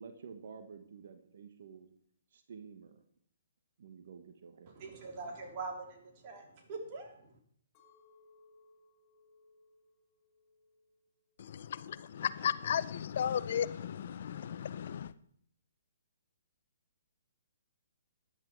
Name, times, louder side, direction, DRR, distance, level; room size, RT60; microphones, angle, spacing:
voice 1, 0.0-1.9 2.3-3.0 3.8-5.0, right 6 dB, 60° right, 1.4 m, -51 dB
voice 2, 4.7-7.3, right 3 dB, 40° right, 3.6 m, -43 dB
Chink clink, 7.7-12.0 12.5-13.1, left 3 dB, 25° left, 7.1 m, -66 dB
voice 3, 11.4-15.1, left 8 dB, 55° left, 0.6 m, -35 dB
13.5 x 10.5 x 4.7 m
hypercardioid pair, 135°, 0 cm